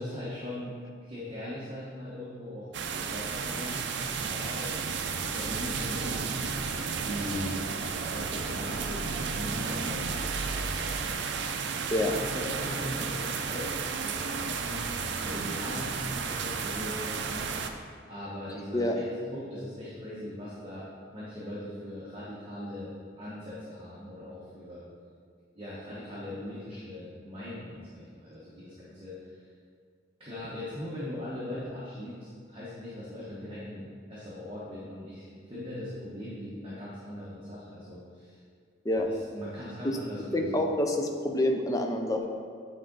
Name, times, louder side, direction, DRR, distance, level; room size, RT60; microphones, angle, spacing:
voice 1, 0.0-2.7 3.0-3.9 4.2-4.7 5.3-6.2 7.0-7.6 8.1-9.0 9.3-11.4 11.9-13.7 14.0-17.5 18.1-19.0 19.3-20.9 21.1-24.8 25.5-29.4 30.2-38.4 39.0-40.6, left 1 dB, 30° right, -9 dB, 1.1 m, -40 dB
sound 1, 2.7-17.7, right 5 dB, 70° right, 0.5 m, -33 dB
voice 2, 40.3-42.3, left 1 dB, 20° left, 2 dB, 0.5 m, -27 dB
8.7 x 3.7 x 3.9 m, 2.1 s
head